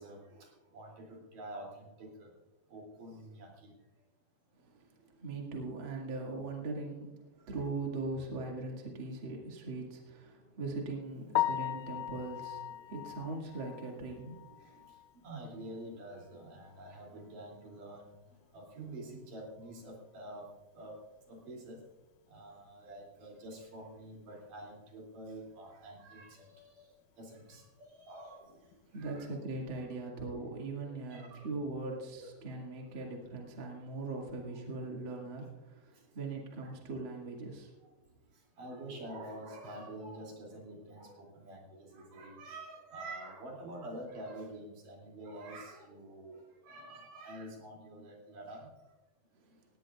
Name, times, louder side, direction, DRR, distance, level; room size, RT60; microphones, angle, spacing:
voice 1, 0.0-2.3 2.7-3.7 7.4-7.5 12.7-12.8 14.6-21.0 21.3-21.8 22.3-29.3 30.9-32.6 33.4-33.8 34.5-34.6 35.9-36.0 36.6-36.8 38.3-49.0, right 1 dB, 80° right, -1 dB, 4.4 m, -48 dB
voice 2, 4.5-14.9 28.9-37.7 49.3-49.5, right 3 dB, 40° right, -1 dB, 2.7 m, -40 dB
Piano, 11.3-15.3 15.7-15.8 16.3-16.4 16.7-16.8 19.9-20.0 28.5-28.7, left 13 dB, 85° left, 2.2 m, -37 dB
18.5 x 17.0 x 2.4 m, 1.1 s
omnidirectional pair, 3.7 m